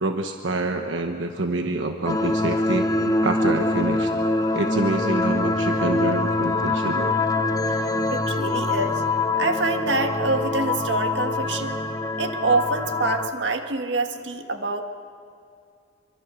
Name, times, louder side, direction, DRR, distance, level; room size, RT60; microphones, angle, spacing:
voice 1, 0.0-4.2 4.5-7.1 8.3-8.5, right 2 dB, 90° right, 5 dB, 1.2 m, -27 dB
sound 1, 2.1-13.3, left 2 dB, 20° left, 0.9 m, -24 dB
voice 2, 8.1-9.0 9.4-11.8 12.2-14.8, right 3 dB, 70° right, 5 dB, 1.7 m, -25 dB
24.5 x 24.5 x 6.3 m, 2.4 s
head